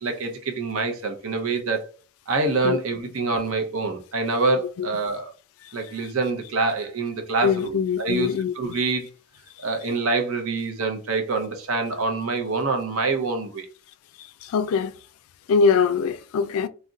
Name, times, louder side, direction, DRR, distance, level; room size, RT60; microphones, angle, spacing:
voice 1, 0.0-1.9 2.3-5.3 5.7-9.1 9.6-13.7, right 3 dB, 75° right, 0.7 m, -26 dB
voice 2, 7.4-8.8 14.4-14.9 15.5-16.7, left 5 dB, 80° left, 0.3 m, -22 dB
2.4 x 2.1 x 3.8 m
head